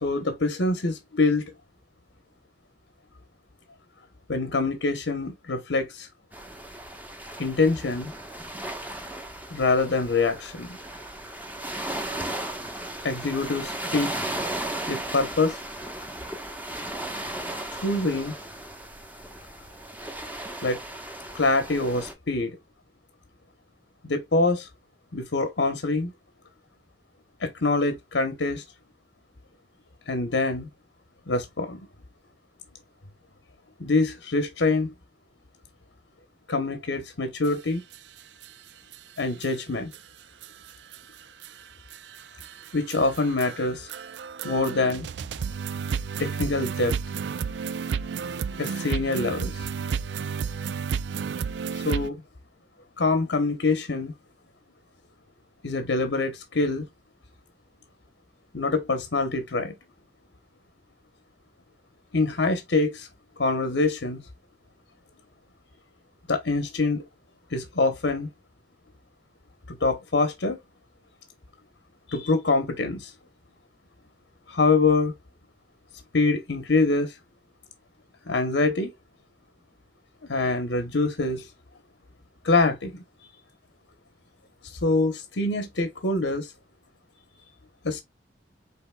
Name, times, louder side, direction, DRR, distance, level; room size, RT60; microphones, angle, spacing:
voice 1, 0.0-1.5 4.3-6.1 7.4-8.1 9.5-10.8 13.0-14.1 14.7-15.6 17.8-18.3 20.6-20.8 21.3-22.5 24.0-24.7 25.1-26.1 27.4-28.6 30.1-30.7 31.3-31.9 33.8-34.9 36.5-37.8 39.2-39.9 42.7-43.9 44.4-45.1 46.2-47.0 48.6-49.7 51.7-52.2 53.0-54.1 55.6-56.9 58.5-59.7 62.1-63.1 63.4-64.2 66.3-67.0 67.5-68.3 69.7-70.6 72.1-73.1 74.5-75.1 76.1-77.2 78.3-78.9 80.3-81.5 82.4-83.0 84.6-86.5 87.8-88.0, left 3 dB, 85° left, 1.0 m, -25 dB
sound 1, 6.3-22.1, right 1 dB, 10° right, 1.0 m, -36 dB
sound 2, 37.4-37.5 37.9-38.0 38.4-38.5 38.9-39.0 39.4-39.5 39.9-40.0 40.4-52.1, right 6 dB, 70° right, 0.4 m, -32 dB
5.7 x 4.1 x 2.3 m
head